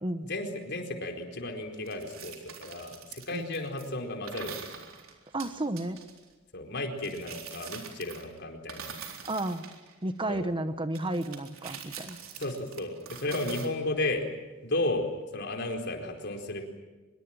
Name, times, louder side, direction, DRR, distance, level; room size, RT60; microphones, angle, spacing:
voice 1, 0.2-4.7 6.5-9.0 10.3-10.4 12.4-14.3 14.6-16.6, left 2 dB, 55° left, 3 dB, 4.5 m, -33 dB
sound 1, 1.8-3.9 4.3-6.2 7.0-8.4 8.7-10.3 10.9-13.7, right 7 dB, 80° right, 3.9 m, -44 dB
voice 2, 5.3-6.0 9.3-9.6 10.0-12.2, right 1 dB, 25° right, 10 dB, 1.1 m, -32 dB
25.0 x 22.5 x 9.1 m, 1.2 s
head